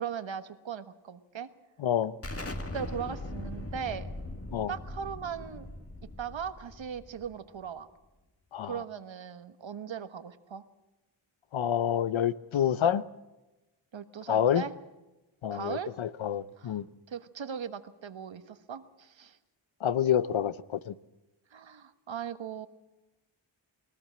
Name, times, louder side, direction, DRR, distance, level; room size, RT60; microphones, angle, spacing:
voice 1, 0.0-1.5 2.7-4.1 4.7-5.7 6.2-7.9 8.6-10.6 13.9-14.7 15.5-15.9 16.6-16.8 17.1-19.4 21.5-22.7, right 7 dB, 65° right, 1.4 m, -38 dB
voice 2, 1.8-2.2 4.5-4.7 8.5-8.7 11.5-13.0 14.3-14.6 15.4-16.8 19.8-20.9, left 9 dB, 70° left, 0.9 m, -28 dB
Explosion, 2.2-7.7, left 2 dB, 30° left, 2.1 m, -40 dB
21.0 x 19.5 x 7.5 m
wide cardioid pair, 80°, 48 cm